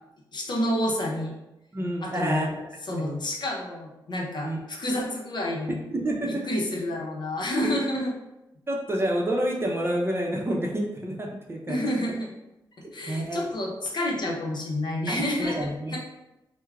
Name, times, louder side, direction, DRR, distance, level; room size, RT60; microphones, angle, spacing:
voice 1, 0.3-1.3 2.0-2.5 2.9-5.9 6.3-8.1 11.7-12.3 12.9-16.0, left 1 dB, 60° left, -1 dB, 0.8 m, -29 dB
voice 2, 1.7-2.5 3.0-3.2 4.4-4.6 5.9-6.4 7.6-7.8 8.7-11.8 13.1-13.5 15.1-16.0, right 1 dB, 30° right, -1 dB, 0.7 m, -28 dB
4.3 x 2.2 x 2.4 m, 0.92 s
cardioid pair, 65°, 9 cm